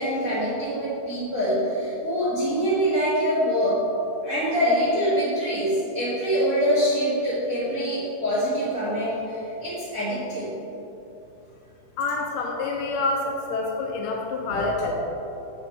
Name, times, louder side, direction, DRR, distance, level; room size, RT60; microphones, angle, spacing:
voice 1, 0.0-3.8 4.2-10.5 14.5-14.6, equal, 35° right, -12 dB, 1.6 m, -24 dB
voice 2, 12.0-14.9, left 3 dB, 75° left, -1 dB, 2.2 m, -27 dB
7.1 x 6.0 x 4.5 m, 2.9 s
omnidirectional pair, 4.1 m